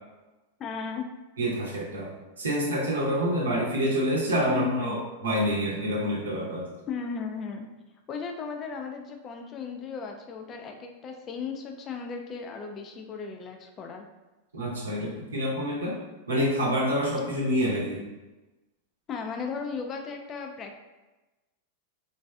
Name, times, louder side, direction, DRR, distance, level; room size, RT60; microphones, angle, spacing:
voice 1, 0.6-1.1 4.5-5.0 6.9-7.7 8.1-14.1 19.1-20.8, left 6 dB, 30° left, 3 dB, 0.3 m, -35 dB
voice 2, 1.4-6.7 14.5-16.0 16.3-18.0, equal, 80° right, -5 dB, 0.7 m, -27 dB
3.0 x 2.6 x 2.3 m, 1.1 s
figure-of-eight pair, 90°, 0 cm